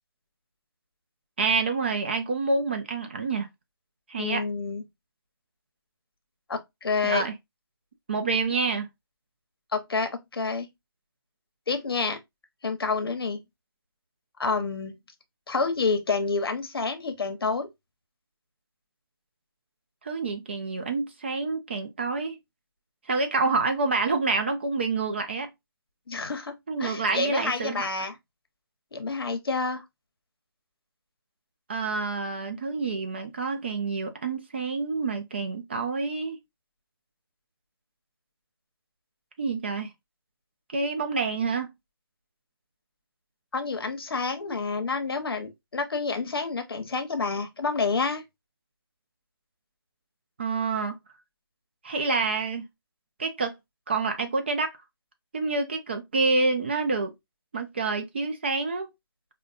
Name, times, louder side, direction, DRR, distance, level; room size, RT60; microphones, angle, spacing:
voice 1, 1.4-3.5 4.1-4.4 7.0-7.3 8.1-8.9 20.0-22.4 23.1-25.5 26.7-27.9 31.7-36.4 39.4-39.9 40.7-41.7 50.4-51.0 51.8-52.6 53.2-53.5 53.9-54.8 55.3-57.1 57.5-58.9, right 4 dB, 25° right, 0.4 m, -27 dB
voice 2, 4.2-4.8 6.5-7.3 9.7-10.7 11.7-12.2 12.6-13.4 14.4-14.9 15.5-17.7 26.1-28.1 28.9-29.8 43.5-48.2, left 4 dB, 65° left, 0.9 m, -28 dB
5.1 x 2.2 x 2.4 m
hypercardioid pair, 165°, 13 cm